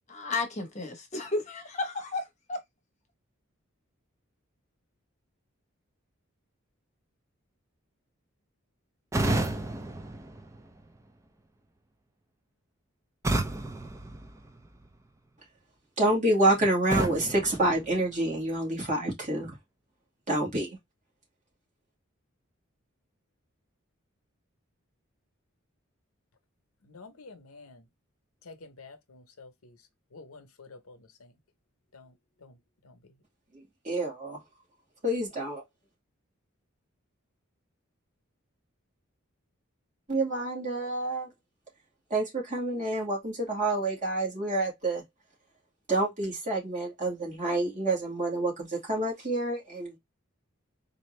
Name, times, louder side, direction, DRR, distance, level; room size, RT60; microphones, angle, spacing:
voice 1, 0.1-2.6, left 3 dB, 35° left, 0.9 m, -33 dB
sound 1, 9.1-11.1 13.2-15.0 16.9-18.5, right 2 dB, 15° right, 0.4 m, -32 dB
voice 2, 16.0-19.6 20.3-20.8 33.8-34.4 35.0-35.6 40.1-41.3 42.1-45.0 45.9-50.0, right 2 dB, 35° right, 2.1 m, -28 dB
voice 3, 26.9-27.9 28.4-29.8 30.1-31.3 31.9-32.1 32.4-32.6 32.8-32.9, left 3 dB, 90° left, 0.8 m, -50 dB
4.2 x 2.7 x 3.2 m
head